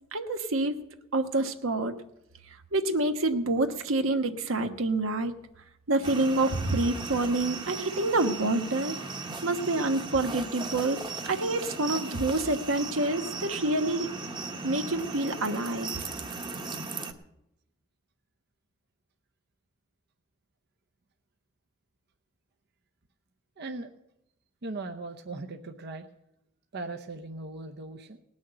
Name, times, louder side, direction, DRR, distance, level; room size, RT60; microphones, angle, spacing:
voice 1, 0.1-0.7 1.1-1.9 2.7-5.3 5.9-9.0 9.4-11.0 11.3-14.1 14.6-15.9, right 2 dB, 85° right, 6 dB, 1.2 m, -27 dB
sound 1, 6.0-17.1, right 3 dB, 25° right, 1.0 m, -37 dB
voice 2, 23.6-23.9 24.6-26.1 26.7-28.2, right 2 dB, 55° right, 4 dB, 0.8 m, -38 dB
18.5 x 6.3 x 8.7 m, 0.84 s
head